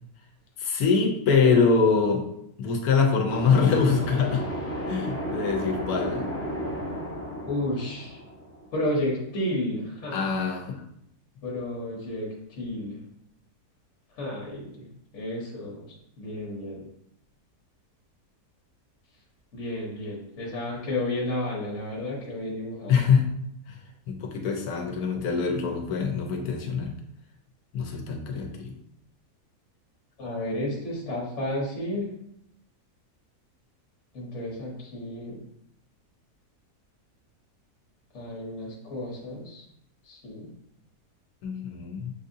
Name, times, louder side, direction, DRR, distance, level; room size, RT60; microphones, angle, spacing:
voice 1, 0.6-2.3 2.6-4.4 4.9-6.3 10.1-10.8 22.9-23.3 24.1-26.9 27.7-28.8 41.4-42.1, left 5 dB, 70° left, 3 dB, 1.2 m, -24 dB
sound 1, 3.3-9.0, equal, 20° left, 0.3 m, -33 dB
voice 2, 7.4-8.2 8.7-10.3 11.4-13.0 14.2-14.8 15.1-16.8 19.5-23.0 30.2-32.1 34.1-35.4 38.1-39.6 40.0-40.5, left 1 dB, 50° left, -3 dB, 1.2 m, -32 dB
6.5 x 2.7 x 2.6 m, 0.75 s
omnidirectional pair, 1.7 m